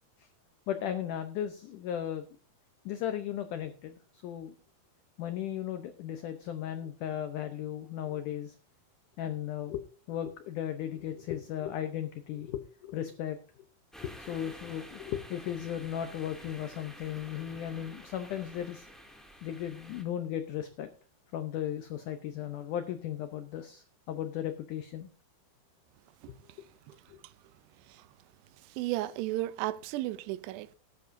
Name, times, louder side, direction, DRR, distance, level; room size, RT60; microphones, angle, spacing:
voice 1, 0.7-2.3 2.9-4.5 5.2-8.6 9.2-13.4 14.0-18.9 19.4-20.9 21.3-25.1 27.1-27.2, left 10 dB, 85° left, 1.8 m, -36 dB
sound 1, 13.9-20.0, equal, ahead, 0.6 m, -50 dB
voice 2, 28.8-30.8, right 16 dB, 85° right, 2.8 m, -33 dB
18.5 x 10.5 x 2.6 m
omnidirectional pair, 4.8 m